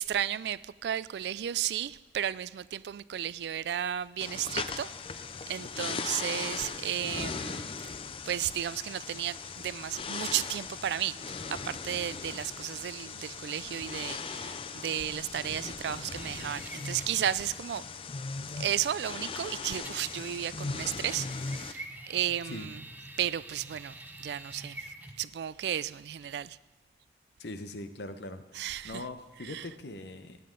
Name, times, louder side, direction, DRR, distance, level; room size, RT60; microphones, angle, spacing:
voice 1, 0.0-4.9 5.5-7.8 8.3-11.2 11.5-17.8 18.6-22.9 23.2-24.9 25.2-26.6 28.5-29.0 29.4-29.7, right 10 dB, 70° right, 0.3 m, -33 dB
sound 1, 4.2-21.7, left 5 dB, 30° left, 0.4 m, -39 dB
sound 2, 16.1-17.2 19.8-20.6 21.1-25.3, right 2 dB, 10° right, 0.7 m, -46 dB
voice 2, 27.4-30.4, left 2 dB, 70° left, 0.9 m, -42 dB
18.0 x 8.6 x 3.8 m
head